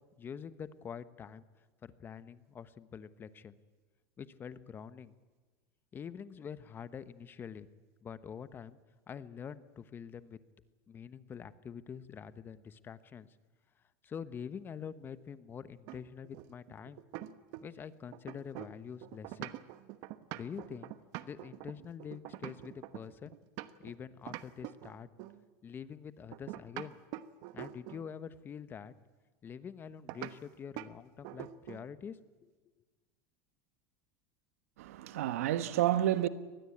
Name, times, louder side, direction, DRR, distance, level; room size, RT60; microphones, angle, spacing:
voice 1, 0.2-1.4 1.8-3.6 4.2-5.1 5.9-7.7 8.0-8.8 9.1-10.4 10.9-13.3 14.0-17.0 17.6-19.6 20.3-20.9 21.2-23.3 23.8-25.1 25.6-27.0 27.5-28.9 29.4-32.5, left 7 dB, 30° left, 1.1 m, -45 dB
sound 1, 15.9-17.8 18.1-23.9 24.3-25.4 26.3-28.1 30.1-30.4 30.8-30.9 31.2-31.9, right 16 dB, 60° right, 1.2 m, -44 dB
voice 2, 34.8-36.3, right 12 dB, 90° right, 1.2 m, -30 dB
24.0 x 19.5 x 8.7 m
supercardioid pair, 125°, 8 cm